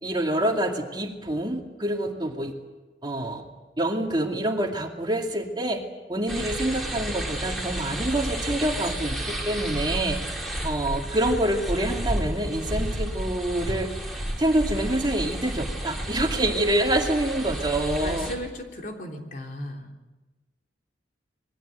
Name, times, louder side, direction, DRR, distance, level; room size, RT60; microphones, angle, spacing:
voice 1, 0.0-2.5 3.0-3.4 3.8-5.8 6.1-10.2 10.6-13.9 14.4-18.3, right 1 dB, 25° right, 2 dB, 2.3 m, -26 dB
sound 1, 6.3-18.3, right 1 dB, ahead, 5.0 m, -31 dB
voice 2, 18.0-19.9, left 1 dB, 45° left, 2 dB, 3.4 m, -36 dB
27.0 x 21.5 x 8.0 m, 1.2 s
head